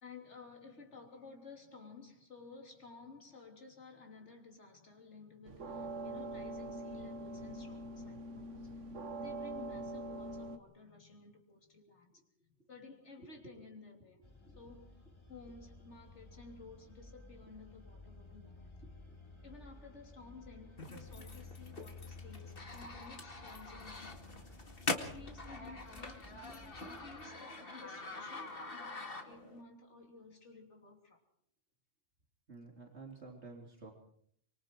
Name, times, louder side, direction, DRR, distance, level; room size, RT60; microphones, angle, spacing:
voice 1, 0.0-8.7 9.2-12.2 12.7-14.2 14.6-15.0 15.3-18.7 19.4-24.2 25.0-31.2, left 4 dB, 70° left, 3.7 m, -54 dB
sound 1, 5.4-10.6, right 2 dB, 90° right, 1.5 m, -43 dB
voice 2, 13.2-13.6 14.4-14.6 19.1-19.2 32.5-33.9, right 3 dB, 65° right, 3.5 m, -52 dB
sound 2, 14.2-27.3, left 2 dB, 25° left, 2.6 m, -54 dB
sound 3, 20.8-29.6, left 3 dB, 50° left, 2.3 m, -44 dB
24.5 x 24.5 x 4.6 m
omnidirectional pair, 1.2 m